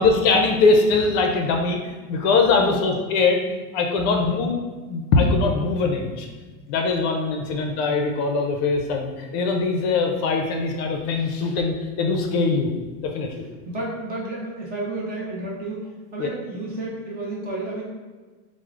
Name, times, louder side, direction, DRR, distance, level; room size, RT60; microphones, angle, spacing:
voice 1, 0.0-3.4 3.7-4.5 4.9-6.3 6.7-12.7 13.0-13.3 16.2-16.3, left 3 dB, 50° left, 2 dB, 0.5 m, -21 dB
voice 2, 4.1-4.4 7.3-7.6 13.6-17.8, right 1 dB, 25° right, -4 dB, 0.4 m, -31 dB
4.4 x 2.0 x 2.4 m, 1.3 s
supercardioid pair, 145°, 41 cm